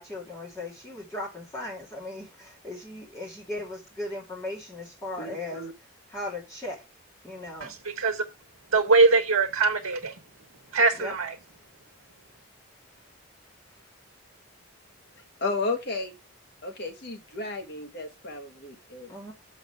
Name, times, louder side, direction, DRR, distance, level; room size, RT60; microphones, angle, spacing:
voice 1, 0.0-5.6 6.1-6.8 7.2-7.7 10.9-11.1 13.0-13.1 19.1-19.3, left 1 dB, 15° left, 2.4 m, -37 dB
voice 2, 5.2-5.7 15.4-16.2 16.6-19.1, left 3 dB, 50° left, 1.3 m, -33 dB
voice 3, 7.6-8.2 8.7-10.1 10.7-11.3, right 3 dB, 80° right, 1.2 m, -22 dB
7.1 x 5.4 x 4.5 m
head